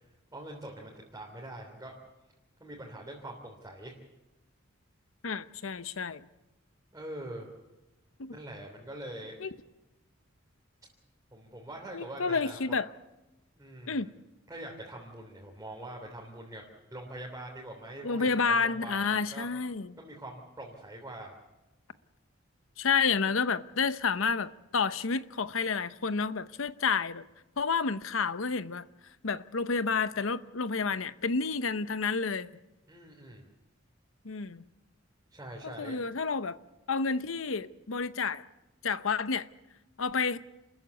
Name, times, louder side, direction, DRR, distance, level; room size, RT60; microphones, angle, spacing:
voice 1, 0.3-1.9 2.6-4.0 6.9-7.5 8.3-9.4 11.3-12.8 13.6-14.1 14.5-16.6 16.9-19.5 20.0-21.3 32.9-33.4 35.3-36.0, right 1 dB, 15° right, 3.3 m, -43 dB
voice 2, 5.2-6.2 8.2-8.4 9.4-9.5 11.9-12.9 13.9-14.1 18.0-19.9 22.8-27.2 27.6-28.9 29.2-32.5 34.2-34.6 35.6-36.6 36.9-38.4 38.8-39.5 40.0-40.4, left 5 dB, 80° left, 0.8 m, -30 dB
28.5 x 14.0 x 8.4 m
head